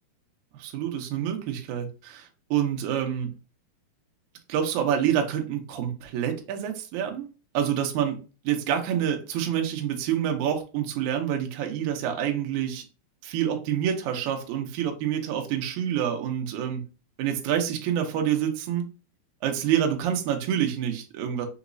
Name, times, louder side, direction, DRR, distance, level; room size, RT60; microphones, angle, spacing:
voice 1, 0.6-3.3 4.5-7.3 7.5-8.2 8.4-12.8 13.2-16.8 17.2-18.8 19.4-21.5, right 9 dB, 85° right, 3 dB, 1.6 m, -27 dB
5.8 x 3.0 x 2.6 m, 0.33 s
omnidirectional pair, 4.6 m